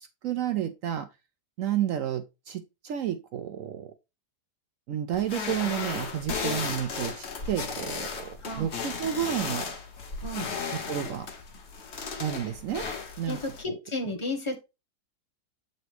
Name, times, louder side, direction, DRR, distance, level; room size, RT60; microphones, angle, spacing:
voice 1, 0.2-1.1 1.6-3.9 4.9-9.6 10.9-11.3 12.2-12.9 13.2-13.4 13.7-13.8, right 10 dB, 70° right, 0.8 m, -31 dB
sound 1, 5.1-13.6, left 5 dB, 45° left, 1.1 m, -35 dB
voice 2, 13.2-14.6, left 2 dB, 20° left, 0.9 m, -33 dB
7.9 x 4.0 x 3.1 m
omnidirectional pair, 1.8 m